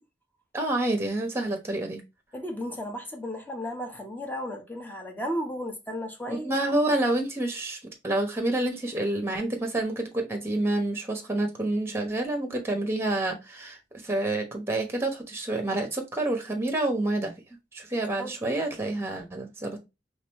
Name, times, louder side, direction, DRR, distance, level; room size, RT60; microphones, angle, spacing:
voice 1, 0.5-2.0 6.3-7.8 8.0-17.3 17.7-19.8, right 2 dB, 15° right, 1.1 m, -28 dB
voice 2, 2.3-6.6 18.2-18.6, equal, 10° left, 0.9 m, -34 dB
4.1 x 3.4 x 3.0 m
head